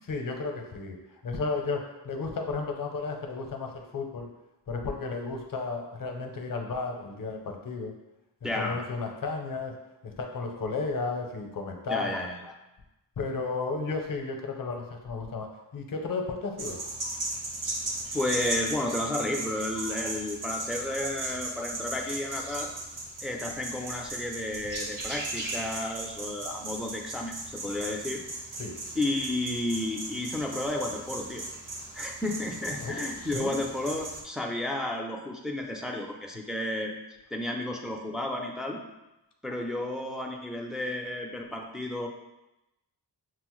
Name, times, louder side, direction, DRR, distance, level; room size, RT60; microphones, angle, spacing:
voice 1, 0.1-1.0 1.2-4.3 4.7-7.9 8.6-9.7 10.0-12.1 13.2-15.5 15.7-16.8 28.6-28.7 32.8-33.6, left 4 dB, 50° left, 2 dB, 0.6 m, -33 dB
voice 2, 8.4-8.8 11.9-12.6 18.1-22.7 23.2-28.2 29.0-31.4 31.9-36.9 37.3-38.8 39.4-42.1, left 1 dB, ahead, 0 dB, 0.3 m, -32 dB
sound 1, 16.6-34.2, right 2 dB, 50° right, 0.7 m, -37 dB
6.0 x 2.0 x 3.0 m, 0.95 s
wide cardioid pair, 140°, 42 cm